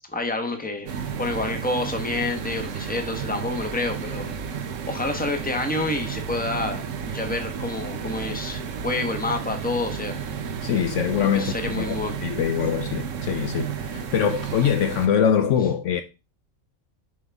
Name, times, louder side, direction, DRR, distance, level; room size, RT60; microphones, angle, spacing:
voice 1, 0.1-0.9 1.2-4.3 4.6-10.2 11.3-12.2, left 2 dB, 5° left, 1.1 m, -28 dB
sound 1, 0.9-15.1, right 7 dB, 70° right, 1.1 m, -32 dB
voice 2, 10.6-16.0, left 8 dB, 65° left, 0.9 m, -23 dB
7.7 x 5.5 x 3.5 m
omnidirectional pair, 1.4 m